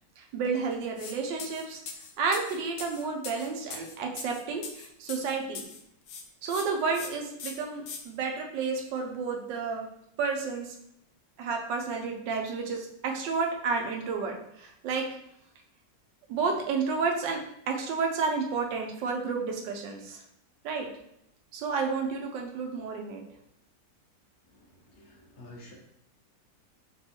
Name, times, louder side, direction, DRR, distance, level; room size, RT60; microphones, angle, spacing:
voice 1, 0.2-1.8 2.2-5.7 6.4-9.9 10.2-10.7 11.4-15.1 16.3-20.2 20.6-20.9 21.5-23.2, right 4 dB, 85° right, 2 dB, 1.4 m, -31 dB
sound 1, 1.0-1.1 1.4-5.8 6.1-6.7 6.9-7.1 7.4-8.0, left 6 dB, 80° left, 0.7 m, -40 dB
voice 2, 24.5-25.7, left 1 dB, 45° left, -5 dB, 0.9 m, -50 dB
3.5 x 2.3 x 4.2 m, 0.75 s
omnidirectional pair, 1.9 m